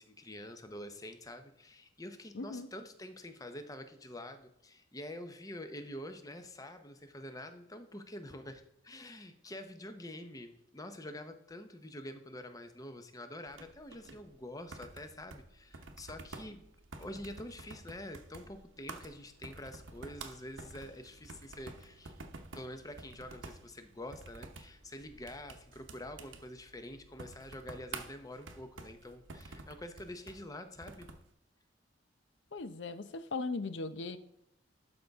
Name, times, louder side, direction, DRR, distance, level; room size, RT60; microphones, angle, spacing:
voice 1, 0.0-16.6 17.0-22.1 22.5-31.1, left 1 dB, 20° left, 8 dB, 0.7 m, -47 dB
voice 2, 2.3-2.7 32.5-34.2, left 3 dB, 65° left, 12 dB, 0.6 m, -38 dB
sound 1, 13.4-31.3, right 3 dB, 85° right, 0.9 m, -50 dB
12.0 x 5.3 x 3.5 m, 0.81 s
head